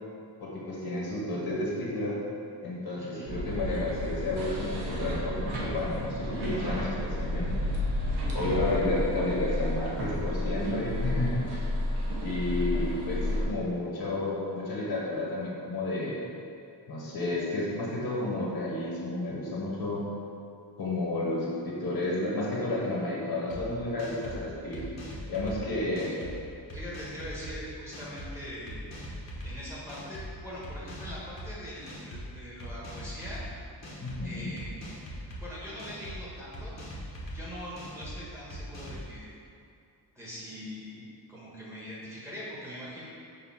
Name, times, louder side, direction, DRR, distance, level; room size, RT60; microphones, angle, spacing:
voice 1, 0.4-2.2 2.6-7.7 8.3-11.4 11.7-11.8 12.2-16.2 16.9-20.0 20.8-24.9 25.3-26.1 34.0-34.5, left 2 dB, 60° left, -5 dB, 1.5 m, -31 dB
voice 2, 3.0-3.3 26.7-28.8 29.4-33.4 34.2-34.9 35.3-36.8 37.3-39.3 40.1-41.0 41.3-43.0, equal, 5° right, -9 dB, 1.4 m, -42 dB
sound 1, 3.3-13.4, left 1 dB, 60° right, 1.2 m, -31 dB
sound 2, 23.5-23.6 24.0-24.4 24.7-25.6 26.0-26.3 26.7-27.5 27.9-28.3 28.7-29.5 29.9-30.3 30.6-31.5 31.9-32.3 32.6-33.5 33.8-34.2 34.6-35.4 35.8-36.2 36.5-37.4 37.8-38.1 38.5-39.0, equal, 40° left, 1.1 m, -41 dB
6.9 x 2.7 x 5.6 m, 2.5 s
wide cardioid pair, 175°, 42 cm